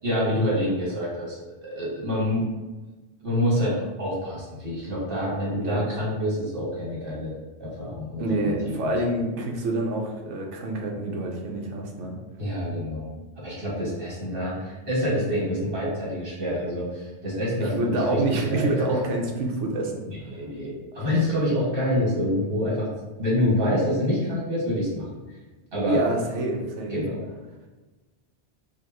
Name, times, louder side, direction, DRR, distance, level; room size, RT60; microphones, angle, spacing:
voice 1, 0.0-2.4 3.2-7.3 7.6-8.9 12.4-13.1 13.4-18.8 20.1-22.9 23.2-25.1 25.7-26.0 26.9-27.2, left 1 dB, 50° right, -7 dB, 1.9 m, -27 dB
voice 2, 8.2-12.2 17.6-20.0 21.0-21.2 25.9-26.9, right 1 dB, 85° right, 1 dB, 1.0 m, -27 dB
4.9 x 2.5 x 2.9 m, 1.2 s
omnidirectional pair, 1.2 m